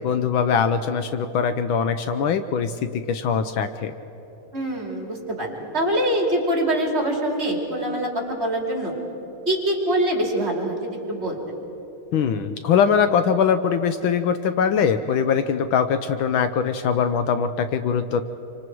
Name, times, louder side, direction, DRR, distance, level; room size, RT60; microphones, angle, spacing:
voice 1, 0.0-3.9 12.1-18.2, left 7 dB, 70° left, 9 dB, 1.4 m, -22 dB
voice 2, 4.5-8.9 9.5-11.6, right 1 dB, 30° right, 0 dB, 3.0 m, -24 dB
27.0 x 25.5 x 4.7 m, 3.0 s
omnidirectional pair, 2.4 m